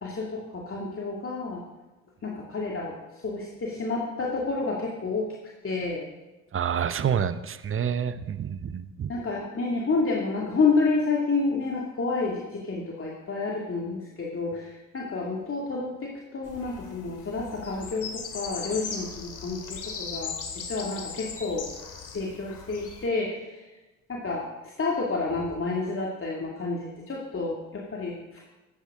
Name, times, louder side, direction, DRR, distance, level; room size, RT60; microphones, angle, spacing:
voice 1, 0.0-1.6 2.2-3.0 3.2-5.3 5.6-6.0 9.1-20.3 20.7-21.7 22.1-23.7 24.1-24.4 24.8-28.4, left 3 dB, 35° left, -2 dB, 2.5 m, -29 dB
voice 2, 6.5-9.1, right 8 dB, 35° right, 13 dB, 0.9 m, -28 dB
sound 1, 16.4-23.1, left 6 dB, 50° left, 2.5 m, -38 dB
15.5 x 13.5 x 3.7 m, 1.1 s
hypercardioid pair, 55°, 39 cm